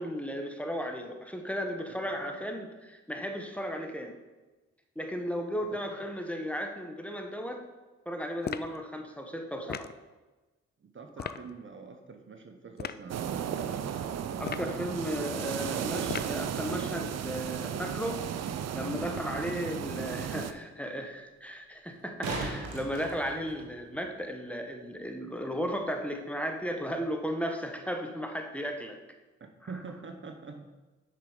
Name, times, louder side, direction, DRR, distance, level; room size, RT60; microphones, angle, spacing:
voice 1, 0.0-4.1 4.9-7.6 8.0-9.9 11.2-11.3 14.4-18.2 18.7-29.0, equal, 5° left, 4 dB, 1.2 m, -35 dB
sound 1, 8.4-8.8 9.7-10.0 11.2-11.4 12.8-13.0 14.4-14.8 16.1-16.4, left 8 dB, 35° left, 0.4 m, -37 dB
voice 2, 10.8-13.6 19.0-19.2 29.7-30.7, right 4 dB, 40° right, 5 dB, 0.9 m, -44 dB
sound 2, 13.1-20.5, right 8 dB, 60° right, 0.6 m, -34 dB
sound 3, 21.9-24.0 26.9-27.0, right 3 dB, 85° right, 1.2 m, -37 dB
6.9 x 6.0 x 5.0 m, 1.2 s
supercardioid pair, 45°, 29 cm